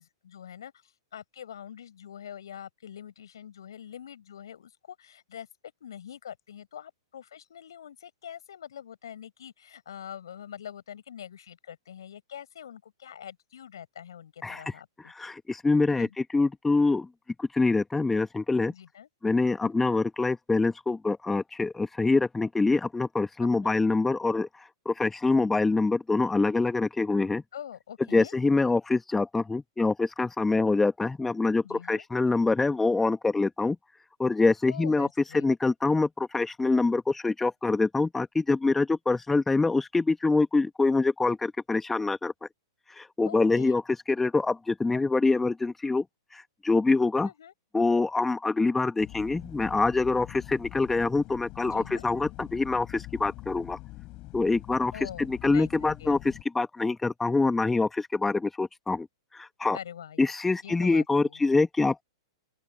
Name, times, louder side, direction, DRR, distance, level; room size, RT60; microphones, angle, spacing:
voice 1, 0.0-5.5 5.8-15.1 16.0-16.2 18.7-19.1 19.6-19.9 23.6-23.8 27.5-28.4 31.6-32.1 34.7-35.5 43.3-43.8 47.2-47.5 51.6-52.1 54.9-56.2 59.7-60.3 60.6-61.4, left 9 dB, 65° left, 5.2 m, -44 dB
voice 2, 14.4-14.7 15.1-16.1 16.3-17.1 17.4-18.7 19.2-27.4 28.1-33.8 34.2-35.1 35.3-42.3 42.9-43.8 44.1-46.0 46.3-47.3 47.7-53.8 54.3-54.9 55.2-59.1 59.3-59.8 60.2-62.0, left 3 dB, 10° left, 2.1 m, -25 dB
sound 1, 49.0-56.4, left 20 dB, 35° left, 7.7 m, -44 dB
open air
figure-of-eight pair, 105°, 2 cm